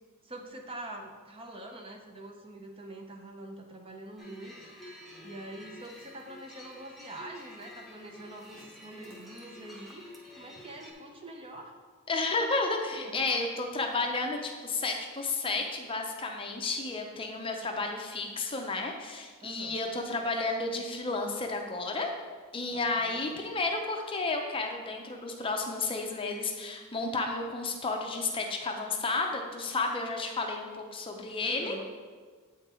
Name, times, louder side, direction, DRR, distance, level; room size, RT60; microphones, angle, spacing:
voice 1, 0.2-4.6 4.9-10.1 10.4-11.7 12.9-13.3 19.4-19.8 22.7-23.4 31.4-31.8, right 1 dB, 25° right, 2 dB, 0.6 m, -45 dB
sound 1, 4.2-10.9, left 1 dB, ahead, 0.9 m, -50 dB
voice 2, 12.1-22.1 22.5-31.8, left 3 dB, 25° left, 3 dB, 0.6 m, -32 dB
7.9 x 3.8 x 4.3 m, 1.5 s
head